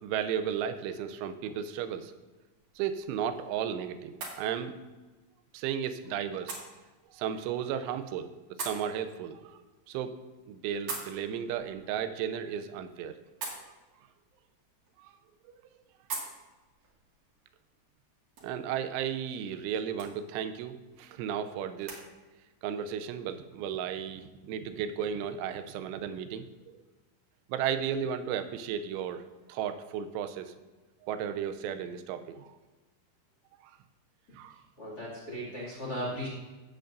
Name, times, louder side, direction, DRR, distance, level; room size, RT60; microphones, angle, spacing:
voice 1, 0.0-2.1 2.8-4.7 5.5-6.6 7.1-8.3 8.6-9.6 9.9-10.2 10.5-13.2 15.0-15.1 18.4-22.0 22.6-26.8 27.5-30.5 31.0-32.5 34.3-34.6, right 8 dB, 85° right, 10 dB, 3.1 m, -34 dB
sound 1, 2.5-22.0, right 4 dB, 50° right, 2.6 m, -47 dB
voice 2, 34.8-36.3, equal, 30° left, -5 dB, 1.7 m, -36 dB
16.5 x 7.8 x 2.6 m, 1.2 s
omnidirectional pair, 5.4 m